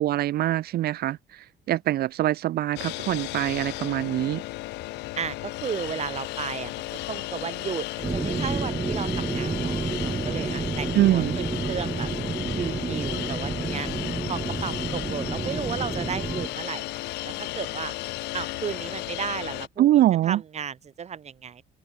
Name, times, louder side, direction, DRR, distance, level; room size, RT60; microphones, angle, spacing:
voice 1, 0.0-4.4 10.9-11.3 19.8-20.4, right 14 dB, 65° right, 1.7 m, -23 dB
sound 1, 2.8-19.7, left 20 dB, 85° left, 1.8 m, -34 dB
voice 2, 5.2-9.8 10.0-12.1 12.6-13.9 14.3-17.9 18.3-21.6, right 7 dB, 40° right, 3.4 m, -34 dB
sound 2, 8.0-16.5, right 4 dB, 20° right, 0.6 m, -30 dB
open air
cardioid pair, 110°, 17 cm